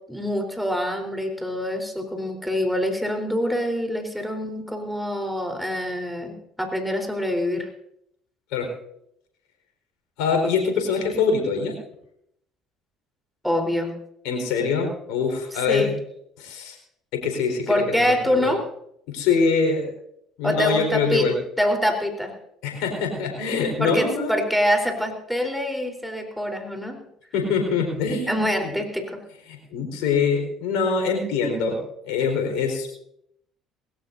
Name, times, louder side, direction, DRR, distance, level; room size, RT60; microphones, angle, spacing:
voice 1, 0.1-7.7 13.4-13.9 15.5-15.9 17.7-18.7 20.4-21.3 21.6-22.3 23.8-27.0 28.3-29.2, equal, ahead, 4 dB, 3.9 m, -25 dB
voice 2, 10.2-11.8 14.2-15.9 16.4-16.8 17.1-18.5 19.1-19.9 20.4-21.4 22.6-24.3 27.3-28.7 29.5-31.8 32.0-32.9, left 5 dB, 75° left, 3 dB, 4.5 m, -24 dB
20.0 x 18.0 x 2.7 m, 0.74 s
hypercardioid pair, 65°, 0 cm